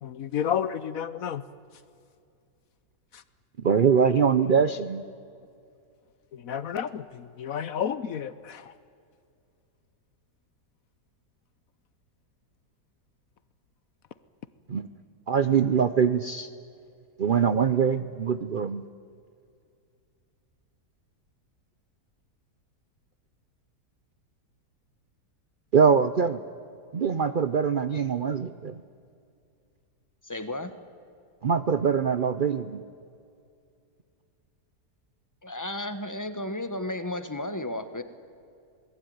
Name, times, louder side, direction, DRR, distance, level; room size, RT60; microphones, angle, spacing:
voice 1, 0.0-1.4 6.5-8.6, left 8 dB, 65° left, 15 dB, 1.1 m, -31 dB
voice 2, 3.6-5.0 14.7-14.9 15.3-16.5 17.2-18.8 25.7-26.4 26.9-28.8 31.4-32.8, right 6 dB, 50° right, 12 dB, 0.6 m, -23 dB
voice 3, 30.2-30.7 35.4-38.0, left 1 dB, 10° left, 10 dB, 1.2 m, -33 dB
27.0 x 20.5 x 9.5 m, 2.4 s
omnidirectional pair, 1.7 m